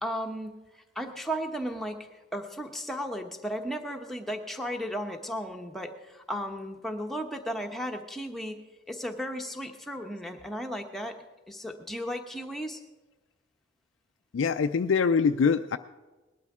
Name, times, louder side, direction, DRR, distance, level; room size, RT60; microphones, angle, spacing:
voice 1, 0.0-8.6 8.9-11.1 11.5-12.8, equal, ahead, 2 dB, 0.9 m, -35 dB
voice 2, 14.3-15.8, left 5 dB, 80° left, 7 dB, 0.4 m, -24 dB
19.5 x 12.5 x 3.6 m, 1.2 s
head